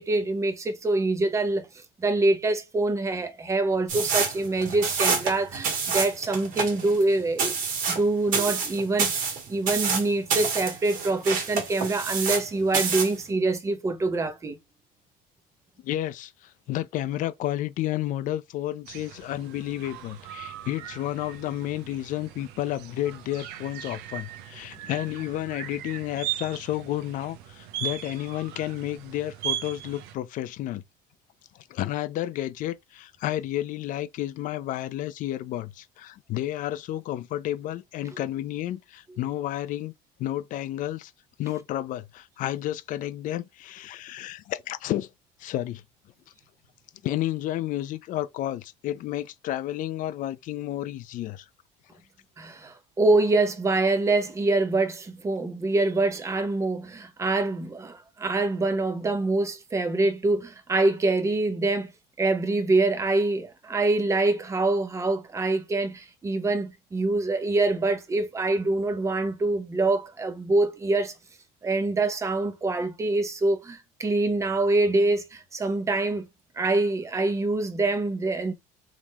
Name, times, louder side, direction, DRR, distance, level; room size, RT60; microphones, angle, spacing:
voice 1, 0.0-1.7 2.0-7.5 7.9-14.6 38.1-38.2 52.4-61.9 62.2-71.1 71.6-76.3 76.6-78.5, right 2 dB, 20° right, 0.9 m, -25 dB
sound 1, 3.9-12.5 12.7-13.2, right 5 dB, 55° right, 1.8 m, -27 dB
voice 2, 15.8-30.8 31.5-39.9 40.2-41.1 41.4-45.1 45.4-45.8 47.0-51.5, left 13 dB, 50° left, 0.6 m, -31 dB
sound 2, 18.9-30.1, right 12 dB, 75° right, 0.8 m, -38 dB
3.6 x 3.2 x 4.2 m
cardioid pair, 135°, 17 cm